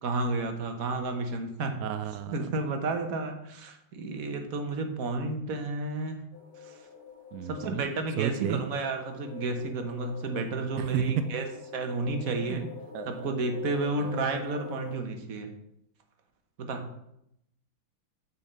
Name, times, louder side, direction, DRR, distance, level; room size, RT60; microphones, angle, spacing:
voice 1, 0.0-1.7 2.3-6.2 6.6-6.8 7.5-11.5 11.7-12.7 13.1-15.5 16.6-16.8, right 3 dB, 50° right, 5 dB, 1.3 m, -31 dB
voice 2, 1.8-2.5 7.3-7.9 8.2-8.6 10.8-11.0 12.5-12.6 12.9-13.3 14.0-14.1, right 9 dB, 80° right, 9 dB, 0.8 m, -33 dB
sound 1, 6.3-15.0, left 7 dB, 30° left, 1.4 m, -45 dB
7.0 x 4.5 x 6.5 m, 0.78 s
omnidirectional pair, 2.1 m